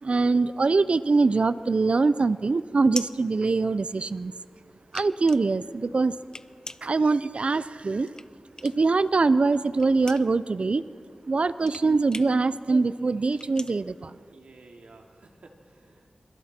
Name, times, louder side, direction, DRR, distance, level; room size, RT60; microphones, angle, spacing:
voice 1, 0.0-4.3 4.9-6.1 6.8-8.1 8.6-10.8 11.3-14.2, right 3 dB, 60° right, 15 dB, 0.5 m, -23 dB
sound 1, 2.6-4.2 4.6-9.0 9.3-14.8, left 2 dB, 30° left, 0.7 m, -41 dB
voice 2, 14.3-16.1, right 3 dB, 90° right, 1 dB, 2.7 m, -52 dB
28.5 x 27.0 x 4.4 m, 2.2 s
wide cardioid pair, 60°, 2 cm